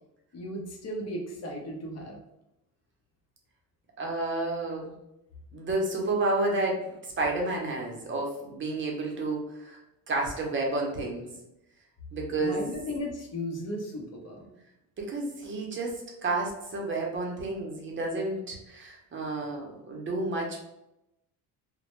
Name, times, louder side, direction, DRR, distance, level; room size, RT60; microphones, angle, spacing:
voice 1, 0.3-2.2 12.4-14.5, left 1 dB, 45° left, 1 dB, 0.7 m, -36 dB
voice 2, 4.0-5.0 5.5-9.8 10.1-11.3 12.1-12.7 15.0-20.6, right 2 dB, 35° right, -1 dB, 0.7 m, -31 dB
2.1 x 2.1 x 3.0 m, 0.87 s
cardioid pair, 105°, 36 cm